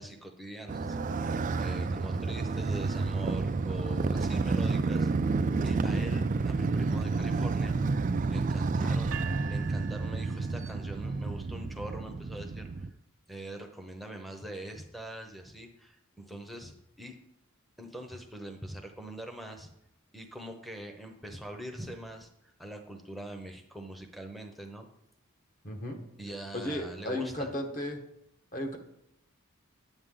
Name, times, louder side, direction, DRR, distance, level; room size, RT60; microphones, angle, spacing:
voice 1, 0.0-8.0 8.3-9.2 9.5-12.9 13.3-17.2 17.8-19.7 20.1-24.9 26.2-27.5, right 1 dB, ahead, 3 dB, 0.8 m, -43 dB
Motorcycle, 0.7-12.9, right 3 dB, 35° right, 0.3 m, -30 dB
sound 1, 9.1-11.2, right 8 dB, 65° right, 0.7 m, -44 dB
voice 2, 25.6-26.0 26.5-28.0 28.5-28.8, left 1 dB, 40° left, 3 dB, 1.3 m, -34 dB
9.7 x 7.6 x 3.8 m, 0.79 s
head